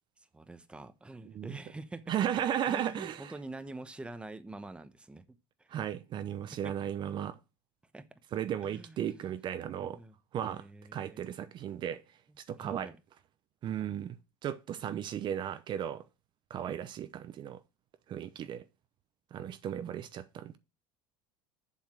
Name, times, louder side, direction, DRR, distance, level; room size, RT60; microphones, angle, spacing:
voice 1, 0.2-2.1 2.7-5.7 6.5-6.8 7.9-8.1 8.6-9.4 9.8-11.4 12.6-13.0, right 2 dB, 10° right, 0.9 m, -46 dB
voice 2, 1.2-1.6 2.1-3.3 5.7-7.3 8.3-10.0 10.3-10.6 10.9-12.0 12.4-12.9 13.6-14.2 14.4-16.0 16.5-17.6 18.1-18.6 19.3-20.6, right 10 dB, 40° right, 0.8 m, -35 dB
7.5 x 5.7 x 7.4 m
supercardioid pair, 105°, 12 cm